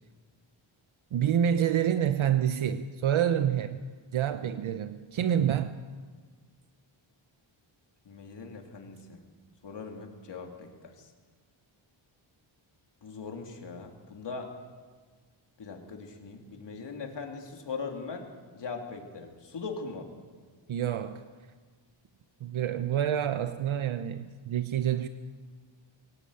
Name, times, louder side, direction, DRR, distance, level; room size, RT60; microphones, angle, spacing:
voice 1, 1.1-3.8 4.1-5.7 20.7-21.3 22.4-25.1, right 9 dB, 75° right, 1.0 m, -27 dB
voice 2, 8.0-9.2 9.6-10.9 13.0-14.5 15.6-18.3 18.5-20.1, left 4 dB, 55° left, 3.2 m, -40 dB
23.0 x 17.0 x 8.9 m
wide cardioid pair, 135°, 49 cm